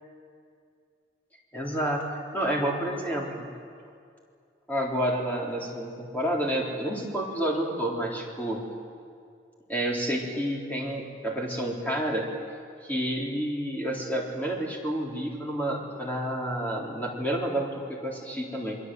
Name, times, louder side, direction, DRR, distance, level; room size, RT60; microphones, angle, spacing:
voice 1, 1.5-3.5 4.7-8.6 9.7-12.3 12.8-18.8, right 1 dB, 10° left, -3 dB, 3.7 m, -29 dB
28.0 x 22.0 x 7.9 m, 2.3 s
head